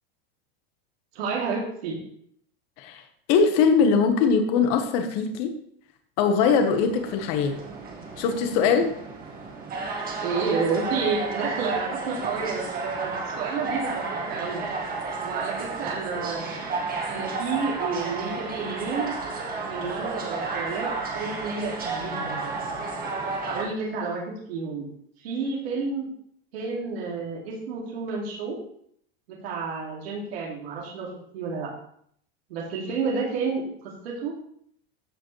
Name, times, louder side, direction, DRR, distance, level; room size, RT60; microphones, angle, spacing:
voice 1, 1.1-2.0 10.2-14.6 15.2-16.7 17.1-19.2 19.6-22.5 23.4-24.2 24.5-24.9 25.2-26.1 26.5-28.6 29.3-31.1 31.3-31.7 32.5-33.6 34.0-34.3, right 4 dB, 80° right, -4 dB, 2.6 m, -30 dB
voice 2, 3.3-5.6 6.2-7.6 8.2-8.9, left 5 dB, 55° left, 6 dB, 1.4 m, -21 dB
sound 1, 6.5-23.6, right 3 dB, 30° right, 1.8 m, -32 dB
14.0 x 5.0 x 3.3 m, 0.65 s
supercardioid pair, 130°, 31 cm